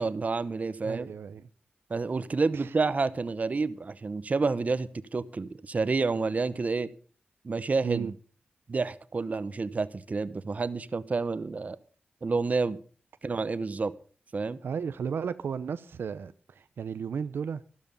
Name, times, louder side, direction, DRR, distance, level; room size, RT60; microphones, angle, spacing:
voice 1, 0.0-1.1 1.9-6.9 7.4-8.2 8.7-11.8 12.2-12.8 13.2-13.9 14.3-14.6, right 4 dB, 45° right, 0.9 m, -29 dB
voice 2, 0.8-1.4 2.5-2.7 7.8-8.1 14.6-17.6, right 6 dB, 85° right, 0.7 m, -34 dB
13.0 x 12.5 x 5.3 m
wide cardioid pair, 95°, 4 cm